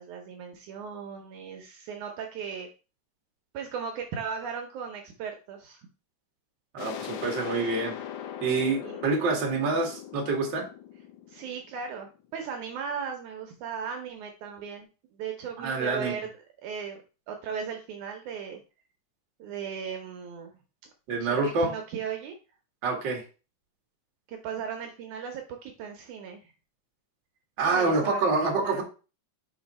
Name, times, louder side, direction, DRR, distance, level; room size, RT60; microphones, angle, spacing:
voice 1, 0.0-2.7 3.5-5.8 8.8-9.0 11.3-14.9 15.1-17.0 17.3-18.6 19.4-20.5 21.2-22.4 24.3-26.5 27.6-28.8, right 6 dB, 75° right, 4 dB, 2.1 m, -37 dB
voice 2, 6.7-7.9 8.4-10.7 15.6-16.1 21.1-21.7 22.8-23.2 27.6-28.8, right 3 dB, 40° right, 0 dB, 1.9 m, -26 dB
sound 1, 6.8-12.3, left 10 dB, 75° left, 2.1 m, -40 dB
5.6 x 4.4 x 4.1 m, 0.32 s
omnidirectional pair, 3.7 m